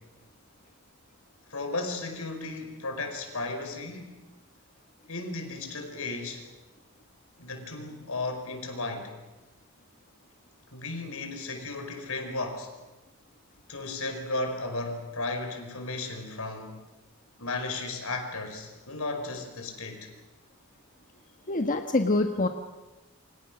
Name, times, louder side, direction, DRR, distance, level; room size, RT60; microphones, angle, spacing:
voice 1, 1.5-4.2 5.1-6.4 7.4-9.1 10.7-12.7 13.7-16.9 17.4-20.1, left 2 dB, 80° left, 5 dB, 5.1 m, -35 dB
voice 2, 21.5-22.5, left 2 dB, 40° left, 5 dB, 1.4 m, -25 dB
28.5 x 25.5 x 6.2 m, 1.1 s
head